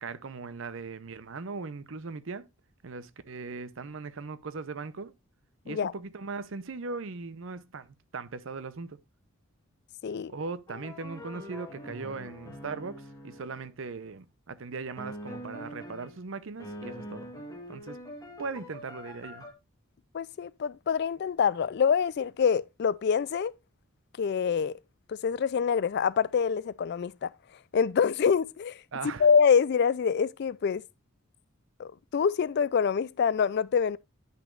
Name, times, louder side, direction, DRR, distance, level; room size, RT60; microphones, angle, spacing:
voice 1, 0.0-2.4 2.8-5.1 5.6-9.0 10.3-17.3 17.7-18.0 18.4-19.4 28.9-29.3, right 4 dB, 65° right, 0.6 m, -39 dB
sound 1, 10.7-13.7 15.0-16.2 16.6-19.5, equal, 15° left, 1.6 m, -44 dB
voice 2, 20.1-23.5 24.2-24.8 25.1-27.3 27.7-28.8 29.2-30.8 31.8-34.0, left 6 dB, 50° left, 0.3 m, -25 dB
10.0 x 6.0 x 2.4 m
head